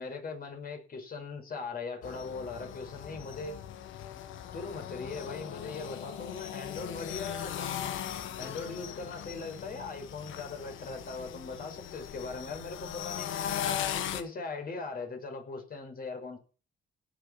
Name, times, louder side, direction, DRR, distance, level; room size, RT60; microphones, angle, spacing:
voice 1, 0.0-3.5 4.5-8.0 8.4-13.3 13.9-16.4, left 3 dB, 50° left, 3 dB, 6.0 m, -40 dB
sound 1, 2.0-14.2, left 9 dB, 85° left, 1.5 m, -38 dB
17.5 x 7.4 x 5.8 m, 0.35 s
cardioid pair, 90°, 20 cm